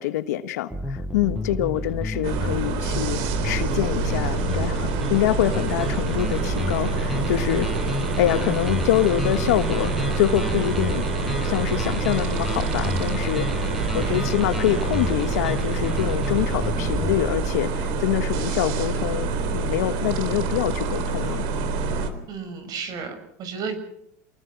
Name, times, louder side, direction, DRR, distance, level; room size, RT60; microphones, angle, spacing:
voice 1, 0.0-7.7 8.2-11.0 11.4-13.5 13.9-21.4, left 13 dB, 85° left, 1.5 m, -25 dB
sound 1, 0.7-17.4, left 1 dB, ahead, 7.2 m, -30 dB
sound 2, 2.2-22.1, right 4 dB, 65° right, 3.8 m, -27 dB
voice 2, 13.9-14.3 22.3-23.8, right 5 dB, 50° right, 6.6 m, -33 dB
28.5 x 20.0 x 6.0 m
supercardioid pair, 110°, 9 cm